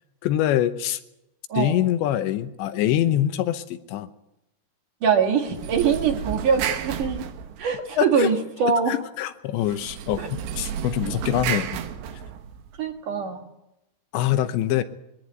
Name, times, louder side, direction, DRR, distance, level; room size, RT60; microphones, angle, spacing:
voice 1, 0.2-1.0 1.5-4.1 8.0-8.3 8.9-11.8 14.1-14.8, left 12 dB, 90° left, 10 dB, 3.2 m, -24 dB
voice 2, 5.0-7.2 7.6-8.9 10.2-10.3 12.8-13.4, right 6 dB, 55° right, 4 dB, 2.8 m, -23 dB
sound 1, 5.5-8.0 9.6-12.8, right 9 dB, 80° right, 3.3 m, -32 dB
22.0 x 14.0 x 9.3 m, 0.91 s
omnidirectional pair, 5.0 m